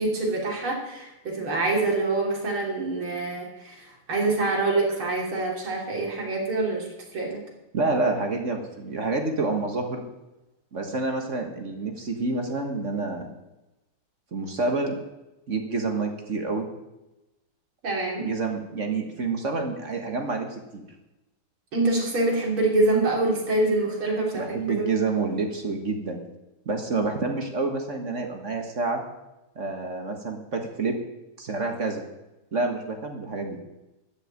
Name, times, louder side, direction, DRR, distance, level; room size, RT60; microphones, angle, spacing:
voice 1, 0.0-3.8 4.1-6.9 7.1-7.4 17.8-18.3 21.7-25.0, right 2 dB, 70° right, -2 dB, 4.1 m, -25 dB
voice 2, 7.7-10.0 10.7-13.3 14.3-15.0 15.5-16.7 18.2-20.8 24.3-26.2 26.6-29.0 29.5-31.0 31.4-32.0 32.5-33.6, right 3 dB, 40° right, 4 dB, 1.6 m, -28 dB
12.5 x 6.6 x 8.9 m, 0.98 s
omnidirectional pair, 2.4 m